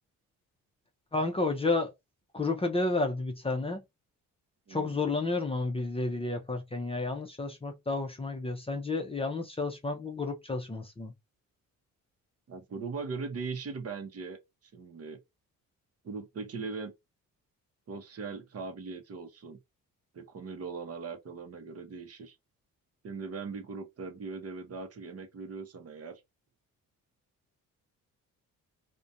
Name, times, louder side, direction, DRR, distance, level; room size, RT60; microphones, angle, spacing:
voice 1, 1.1-1.9 2.3-3.8 4.7-11.1, left 3 dB, 15° left, 0.5 m, -31 dB
voice 2, 4.7-5.0 12.5-14.4 14.7-15.2 16.0-16.9 17.9-19.6 20.1-22.4 23.0-26.2, right 4 dB, 45° right, 0.7 m, -40 dB
2.4 x 2.2 x 2.6 m
cardioid pair, 80°, 34 cm